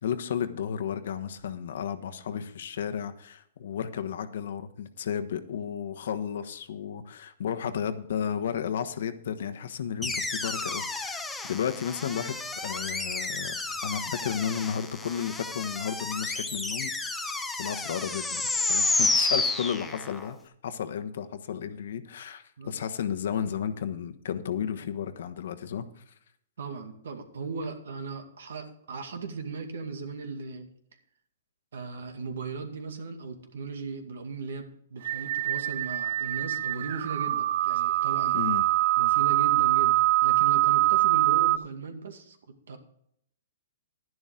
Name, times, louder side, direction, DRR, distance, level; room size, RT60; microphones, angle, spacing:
voice 1, 0.0-11.2 11.5-13.6 13.8-16.9 17.2-17.3 17.6-18.4 18.7-26.0 38.3-38.6, left 8 dB, 65° left, 10 dB, 1.2 m, -33 dB
sound 1, 10.0-20.3, left 3 dB, 5° left, 0.9 m, -31 dB
voice 2, 26.6-30.7 31.7-38.4 39.0-42.4 42.7-42.8, right 4 dB, 80° right, 6 dB, 2.2 m, -37 dB
sound 2, 35.0-41.6, right 16 dB, 50° right, 0.4 m, -24 dB
11.0 x 11.0 x 3.8 m, 0.70 s
hypercardioid pair, 155°, 0 cm